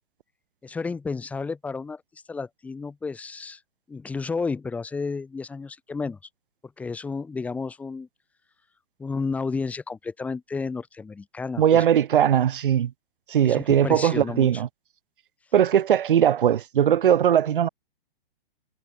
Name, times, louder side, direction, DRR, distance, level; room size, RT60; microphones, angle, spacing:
voice 1, 0.6-2.0 2.3-3.6 3.9-6.2 6.8-8.1 9.0-11.8 13.4-14.5, left 4 dB, 5° left, 2.9 m, -31 dB
voice 2, 11.6-12.9 13.3-14.7 15.5-17.7, right 9 dB, 60° right, 1.8 m, -20 dB
hypercardioid pair, 175°, 30 cm